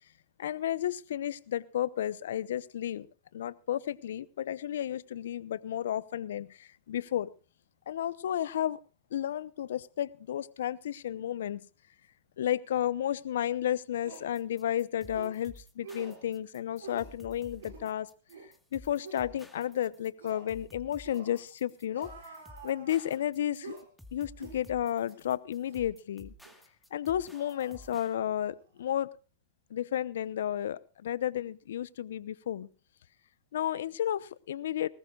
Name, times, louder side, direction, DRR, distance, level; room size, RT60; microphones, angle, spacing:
voice 1, 0.4-3.1 3.3-7.3 7.9-8.8 9.1-11.7 12.4-18.1 18.7-22.3 22.6-23.7 24.1-26.3 26.9-29.1 29.7-32.7 33.5-34.9, left 11 dB, 75° left, 19 dB, 0.8 m, -32 dB
sound 1, 13.3-13.4 14.0-14.3 15.1-15.3 15.8-16.2 16.8-17.1 17.6-17.9 18.3-18.5 19.0-19.3 20.2-20.5 21.0-21.4 21.9-23.2 23.6-23.9 24.4-24.6 25.1-25.2 25.7-25.9 26.4-26.6 27.3-28.3 28.6-28.8, right 4 dB, 80° right, 6.0 m, -48 dB
sound 2, 14.1-28.1, left 1 dB, ahead, 2.2 m, -53 dB
20.5 x 19.0 x 2.4 m, 0.33 s
hypercardioid pair, 100°, 0 cm